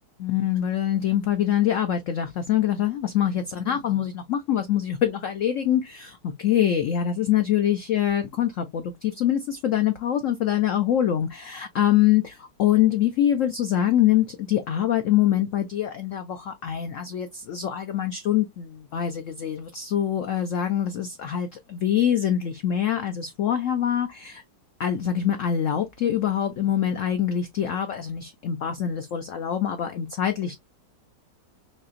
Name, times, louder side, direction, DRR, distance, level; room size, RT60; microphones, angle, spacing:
voice 1, 0.2-24.4 24.8-30.6, left 10 dB, 85° left, 0.6 m, -24 dB
4.2 x 2.8 x 2.4 m
omnidirectional pair, 2.0 m